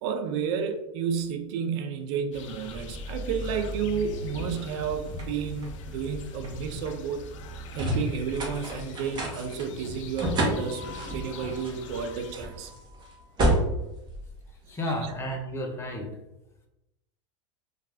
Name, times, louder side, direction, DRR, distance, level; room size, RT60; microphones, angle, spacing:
voice 1, 0.0-7.2 7.7-12.7 14.8-14.9, right 6 dB, 60° right, 6 dB, 0.5 m, -31 dB
sound 1, 2.3-12.3, left 5 dB, 85° left, 0.4 m, -46 dB
Getting Out of Car, 2.7-15.0, right 1 dB, 30° right, 0.8 m, -32 dB
voice 2, 14.7-16.2, equal, 15° left, 1 dB, 0.6 m, -32 dB
2.3 x 2.3 x 3.2 m, 0.93 s
supercardioid pair, 130°, 16 cm